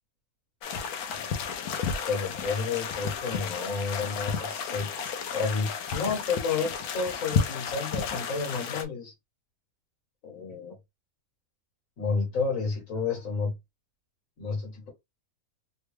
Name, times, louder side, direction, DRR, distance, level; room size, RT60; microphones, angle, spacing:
sound 1, 0.6-8.9, left 6 dB, 85° left, 1.2 m, -32 dB
voice 1, 2.1-4.9 5.3-9.1 10.2-10.8 12.0-13.5 14.4-14.9, left 4 dB, 65° left, 1.6 m, -31 dB
3.5 x 2.3 x 3.2 m
omnidirectional pair, 1.5 m